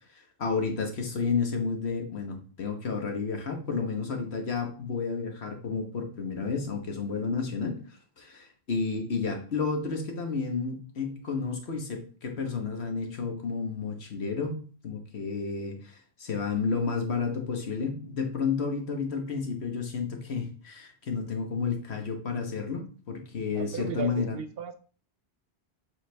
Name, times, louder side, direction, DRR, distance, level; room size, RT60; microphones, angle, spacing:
voice 1, 0.4-24.4, left 5 dB, 75° left, 3 dB, 1.5 m, -31 dB
voice 2, 23.5-24.7, right 7 dB, 70° right, 9 dB, 0.8 m, -36 dB
7.7 x 3.9 x 3.4 m, 0.40 s
omnidirectional pair, 1.1 m